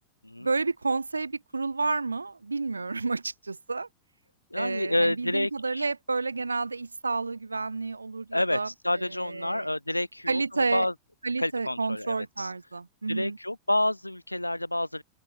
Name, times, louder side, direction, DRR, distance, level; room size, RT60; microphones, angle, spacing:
voice 1, 0.4-3.9 4.6-8.7 9.0-9.7 10.3-10.9 11.2-13.4, right 3 dB, 80° right, 1.8 m, -30 dB
voice 2, 4.5-5.8 8.3-10.9 11.4-12.5 13.1-15.0, left 1 dB, 85° left, 1.9 m, -29 dB
open air
figure-of-eight pair, 90°, 0 cm